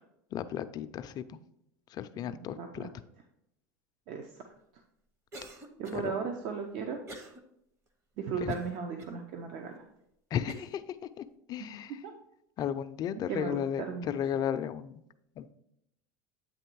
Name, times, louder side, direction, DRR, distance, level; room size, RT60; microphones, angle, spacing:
voice 1, 0.3-1.2 1.9-2.9 5.9-6.1 8.4-8.6 10.3-10.8 11.2-12.0 12.6-14.9 15.4-15.5, left 9 dB, 40° left, 11 dB, 0.4 m, -34 dB
voice 2, 2.3-2.9 4.1-4.3 5.8-7.0 8.2-9.7 12.0-12.1 13.3-13.6 13.9-14.1, right 6 dB, 55° right, 4 dB, 0.7 m, -36 dB
Cough, 5.3-6.1 7.1-7.4 7.9-8.0 8.5-9.1 9.8-9.9 10.5-10.8, right 1 dB, 25° right, 0.9 m, -46 dB
8.6 x 3.0 x 4.5 m, 0.79 s
supercardioid pair, 115°, 10 cm